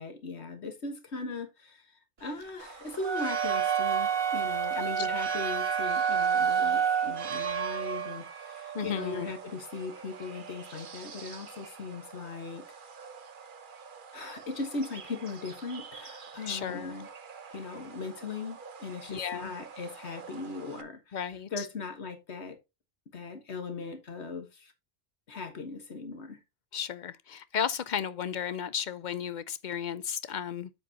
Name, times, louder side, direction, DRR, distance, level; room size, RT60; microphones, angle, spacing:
voice 1, 0.0-12.6 14.1-17.1 17.5-22.6 23.1-24.7 25.3-26.4, left 3 dB, 85° left, 1.7 m, -39 dB
sound 1, 2.6-20.8, right 7 dB, 50° right, 1.0 m, -40 dB
sound 2, 3.0-7.3, right 7 dB, 35° right, 0.5 m, -28 dB
voice 2, 4.8-5.2 8.7-9.3 16.5-16.9 19.1-19.5 21.1-21.7 26.7-30.7, left 8 dB, 50° left, 0.7 m, -34 dB
7.7 x 7.6 x 2.8 m
omnidirectional pair, 1.1 m